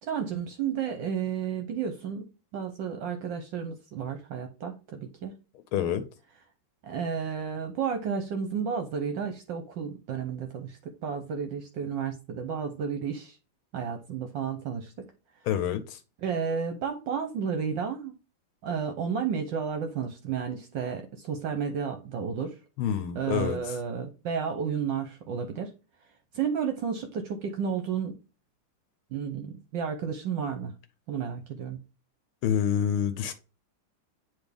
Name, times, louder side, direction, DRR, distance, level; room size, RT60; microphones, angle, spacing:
voice 1, 0.0-2.2 2.5-5.3 6.8-13.4 13.7-14.9 16.2-18.1 18.6-22.6 23.1-25.7 26.3-28.2 29.1-30.7 31.1-31.8, right 7 dB, 70° right, 1.4 m, -32 dB
voice 2, 5.7-6.1 15.5-16.0 22.8-23.8 32.4-33.3, left 9 dB, 90° left, 1.6 m, -27 dB
8.1 x 3.5 x 3.4 m
omnidirectional pair, 2.3 m